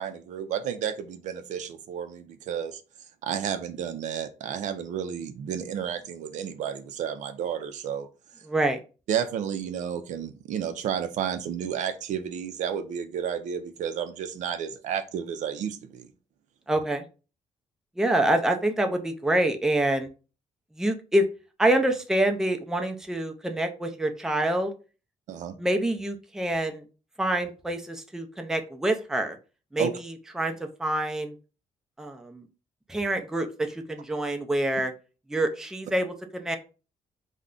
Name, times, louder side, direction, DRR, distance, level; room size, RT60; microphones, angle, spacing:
voice 1, 0.0-2.8 3.2-8.1 9.1-16.1 25.3-25.5 29.8-29.9, right 8 dB, 75° right, 10 dB, 0.4 m, -31 dB
voice 2, 8.5-8.8 16.7-17.0 18.0-20.1 20.8-21.2 21.6-24.7 25.6-26.8 27.2-29.4 29.7-30.5 30.8-31.4 32.0-32.5 32.9-34.9 35.3-36.6, right 1 dB, 5° right, 5 dB, 0.4 m, -26 dB
2.4 x 2.1 x 3.6 m, 0.34 s
cardioid pair, 125°, 13 cm